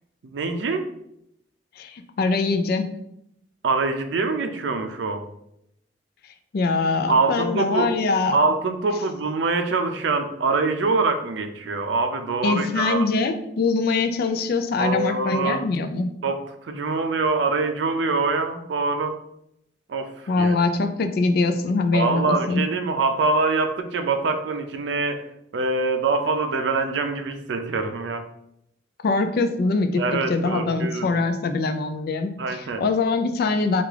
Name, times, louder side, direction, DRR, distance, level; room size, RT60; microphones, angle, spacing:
voice 1, 0.2-0.9 3.6-5.3 7.1-7.9 8.3-13.0 14.8-15.6 16.2-19.2 19.9-20.5 21.9-25.3 25.5-28.2 30.0-31.1 32.4-32.8, right 3 dB, 80° right, 7 dB, 0.4 m, -24 dB
voice 2, 1.8-2.9 6.5-8.4 12.4-16.2 20.3-22.6 29.0-30.0 30.3-33.8, left 3 dB, 60° left, 8 dB, 0.4 m, -23 dB
3.5 x 2.4 x 3.3 m, 0.77 s
head